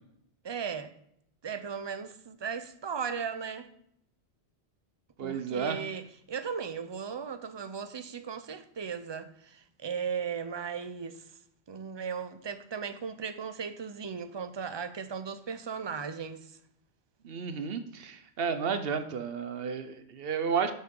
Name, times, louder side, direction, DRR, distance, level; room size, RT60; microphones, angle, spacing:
voice 1, 0.4-0.9 1.4-3.7 5.2-11.2 11.7-16.6, right 6 dB, 35° right, 0.5 m, -37 dB
voice 2, 5.2-5.8 17.2-20.7, right 6 dB, 65° right, 0.9 m, -32 dB
6.6 x 6.5 x 5.3 m
omnidirectional pair, 1.1 m